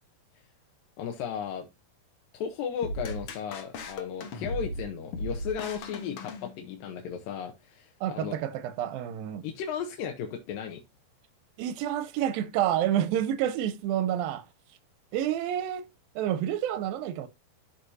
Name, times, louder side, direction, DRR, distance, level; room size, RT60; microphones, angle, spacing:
voice 1, 1.0-1.7 2.3-8.4 9.4-10.8, left 7 dB, 75° left, 2.6 m, -35 dB
sound 1, 2.8-7.0, left 1 dB, 60° left, 1.5 m, -37 dB
voice 2, 8.0-9.5 11.6-14.4 15.1-15.8 16.2-17.3, right 11 dB, 90° right, 2.5 m, -29 dB
12.5 x 4.8 x 2.7 m
omnidirectional pair, 4.1 m